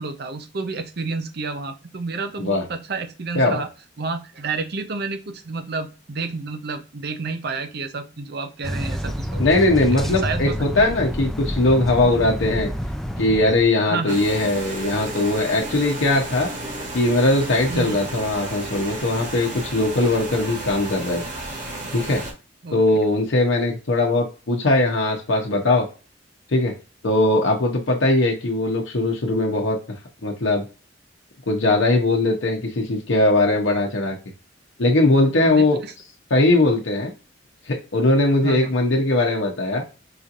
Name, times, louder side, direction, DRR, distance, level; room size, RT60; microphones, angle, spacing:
voice 1, 0.0-3.7 4.0-9.4 9.9-10.9 13.9-14.2 17.7-18.0 22.6-22.8 35.4-35.9 38.4-38.7, right 4 dB, 60° right, 8 dB, 0.7 m, -30 dB
sound 1, 8.6-13.6, equal, ahead, 0.4 m, -28 dB
voice 2, 9.4-12.7 13.2-16.5 16.9-21.2 21.9-22.2 22.7-25.9 26.5-26.8 27.0-29.8 30.2-30.6 31.5-34.2 34.8-35.8 36.3-37.1 37.6-39.8, left 2 dB, 85° left, 0 dB, 0.8 m, -20 dB
sound 2, 14.1-22.3, right 1 dB, 45° right, 1.2 m, -33 dB
4.9 x 2.8 x 2.5 m, 0.33 s
head